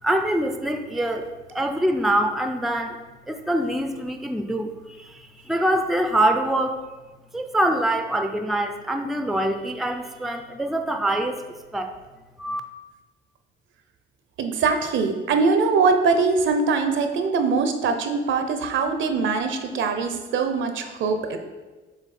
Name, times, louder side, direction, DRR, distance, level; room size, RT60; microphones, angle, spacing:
voice 1, 0.0-3.0 3.3-6.8 7.3-11.4 11.7-11.9 12.4-12.6, right 1 dB, ahead, 6 dB, 0.5 m, -24 dB
voice 2, 14.4-21.4, right 4 dB, 70° right, 7 dB, 0.7 m, -22 dB
7.1 x 3.2 x 4.2 m, 1.2 s
cardioid pair, 90°, 20 cm